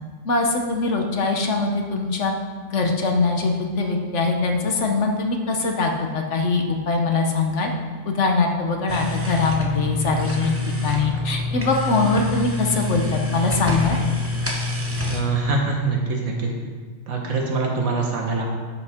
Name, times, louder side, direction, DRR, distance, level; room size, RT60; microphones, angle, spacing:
voice 1, 0.2-2.3 2.7-7.7 8.0-14.0, left 3 dB, 60° left, 2 dB, 1.2 m, -22 dB
sound 1, 8.9-15.2, left 2 dB, 10° right, 0.7 m, -26 dB
voice 2, 15.1-16.5 17.1-18.5, right 4 dB, 75° right, 0 dB, 1.8 m, -23 dB
10.5 x 7.8 x 3.6 m, 1.5 s
omnidirectional pair, 1.5 m